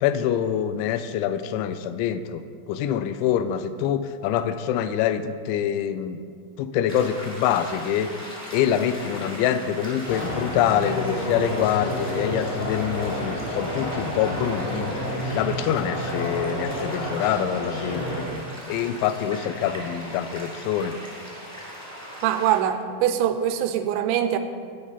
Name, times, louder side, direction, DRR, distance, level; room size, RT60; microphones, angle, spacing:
voice 1, 0.0-2.4 2.7-6.2 6.6-8.1 8.5-14.9 15.3-18.0 18.7-21.0, left 9 dB, 90° left, 12 dB, 3.0 m, -25 dB
sound 1, 6.9-22.6, equal, ahead, 1.9 m, -39 dB
sound 2, 10.1-18.2, left 1 dB, 65° left, 4.6 m, -30 dB
voice 2, 22.2-24.4, right 10 dB, 85° right, 8 dB, 3.0 m, -23 dB
13.5 x 9.1 x 4.1 m, 2.1 s
omnidirectional pair, 5.3 m